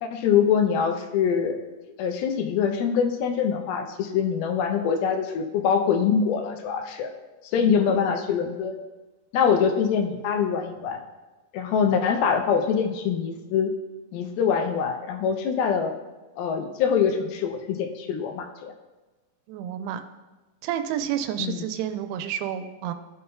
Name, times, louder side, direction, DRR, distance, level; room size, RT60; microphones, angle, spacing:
voice 1, 0.0-1.6 2.0-7.1 7.5-8.8 9.3-11.0 11.5-13.7 14.1-15.9 16.4-18.7 21.4-21.6, left 7 dB, 80° left, 6 dB, 2.3 m, -24 dB
voice 2, 19.5-20.0 20.6-22.9, right 10 dB, 85° right, 8 dB, 2.7 m, -30 dB
15.5 x 5.5 x 2.2 m, 1.2 s
omnidirectional pair, 4.8 m